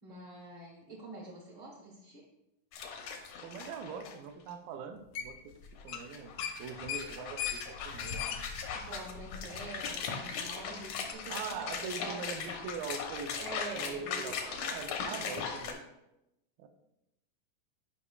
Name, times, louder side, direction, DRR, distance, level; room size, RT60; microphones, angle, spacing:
voice 1, 0.0-2.2 8.7-12.4 13.4-15.4, right 2 dB, 55° right, -3 dB, 1.3 m, -46 dB
sound 1, 2.7-4.1 4.5-4.6 5.6-15.7, left 6 dB, 70° left, 1.8 m, -39 dB
voice 2, 3.4-5.6 5.8-8.5 11.3-15.8 16.6-16.7, right 6 dB, 80° right, 7 dB, 2.4 m, -42 dB
sound 2, 5.1-5.5 5.8-6.1 6.4-9.8 10.1-10.2 11.1-11.2, left 9 dB, 90° left, 1.5 m, -39 dB
12.0 x 5.5 x 2.3 m, 0.89 s
omnidirectional pair, 4.0 m